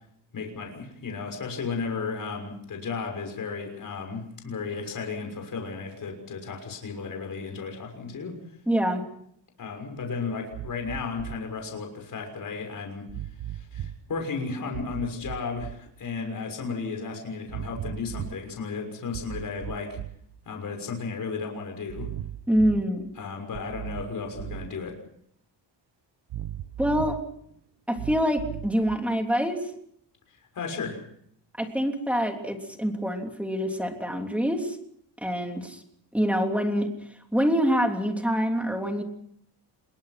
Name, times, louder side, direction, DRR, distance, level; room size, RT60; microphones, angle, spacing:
voice 1, 0.3-8.4 9.6-13.1 13.5-20.0 20.4-22.1 23.2-25.0 30.5-31.0, left 4 dB, 50° left, 3 dB, 6.3 m, -34 dB
voice 2, 8.7-9.0 22.5-23.1 26.8-27.2 27.9-29.7 31.6-34.8 35.2-35.8 36.1-36.9 37.3-39.0, equal, 5° right, 3 dB, 3.2 m, -25 dB
sound 1, 10.5-11.4 13.1-14.0 14.7-15.8 17.5-18.4 19.1-20.4 21.9-22.9 23.5-24.7 26.3-27.3 27.9-29.0, right 12 dB, 70° right, 1.3 m, -37 dB
27.0 x 22.0 x 5.9 m, 0.69 s
wide cardioid pair, 160°, 43 cm